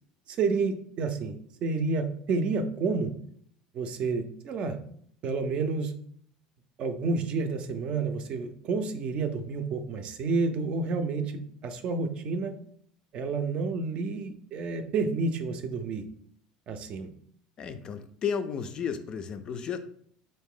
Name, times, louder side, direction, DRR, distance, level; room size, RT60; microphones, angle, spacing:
voice 1, 0.3-3.1 3.7-4.8 5.2-5.9 6.8-12.5 13.1-16.0 16.7-17.1, right 4 dB, 45° right, 8 dB, 0.5 m, -30 dB
voice 2, 17.6-19.8, left 7 dB, 35° left, 9 dB, 0.3 m, -33 dB
4.0 x 2.6 x 3.7 m, 0.62 s
cardioid pair, 135°, 3 cm